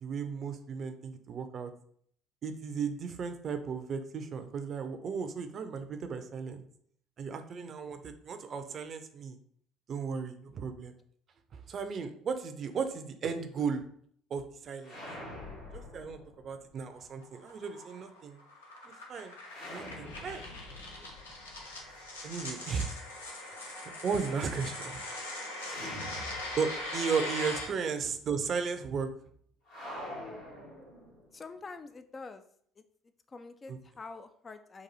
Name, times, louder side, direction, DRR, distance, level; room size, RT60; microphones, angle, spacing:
voice 1, 0.0-1.7 2.4-6.6 7.2-9.4 9.9-10.9 11.5-13.8 14.3-15.0 15.7-18.4 18.8-19.3 19.7-20.4 21.0-21.1 22.2-22.9 23.6-25.0 25.6-25.8 26.6-29.1 33.7-33.8, right 5 dB, 45° right, 8 dB, 0.5 m, -35 dB
sound 1, 14.8-16.8 19.5-22.5 25.6-27.0 27.3-27.4 29.7-31.4, left 1 dB, 70° left, 1.7 m, -46 dB
sound 2, 17.0-27.7, left 2 dB, 85° left, 0.7 m, -41 dB
voice 2, 31.3-32.4 32.8-32.9 33.3-34.8, left 4 dB, 30° left, 9 dB, 0.3 m, -46 dB
4.0 x 2.6 x 4.0 m, 0.63 s
hypercardioid pair, 60°, 0 cm